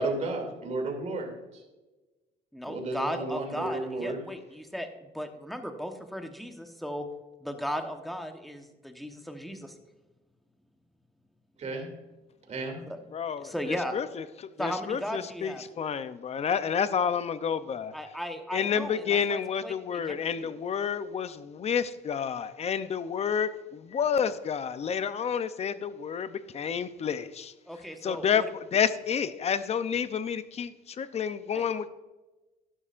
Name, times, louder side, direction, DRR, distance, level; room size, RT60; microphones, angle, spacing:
voice 1, 0.0-1.6 2.6-4.2 11.6-11.9 12.5-12.8, right 2 dB, 40° right, 2.7 m, -33 dB
voice 2, 2.5-4.9 5.1-7.1 7.4-9.7 12.9-13.0 13.4-13.9 14.6-15.6 17.9-20.0 20.4-20.5 27.7-28.4 31.5-31.7, equal, ahead, 1.1 m, -36 dB
voice 3, 13.1-17.9 18.5-27.5 28.0-31.9, left 7 dB, 40° left, 0.6 m, -30 dB
12.0 x 11.0 x 2.5 m
cardioid pair, 110°, 17 cm